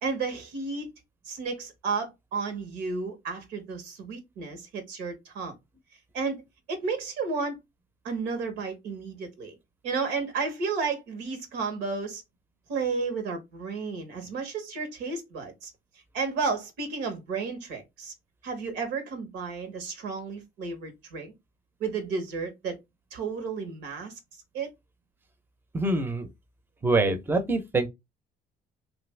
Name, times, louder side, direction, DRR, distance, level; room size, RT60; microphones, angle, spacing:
voice 1, 0.0-0.9 1.2-5.5 6.1-6.4 6.7-7.6 8.0-9.6 9.8-12.2 12.7-15.7 16.1-18.1 18.4-21.3 21.8-22.8 23.1-24.1 24.5-24.7, right 4 dB, 90° right, 1.1 m, -32 dB
voice 2, 25.7-26.3 26.8-27.9, right 2 dB, 10° right, 0.6 m, -25 dB
2.8 x 2.5 x 3.2 m
cardioid pair, 110°, 17 cm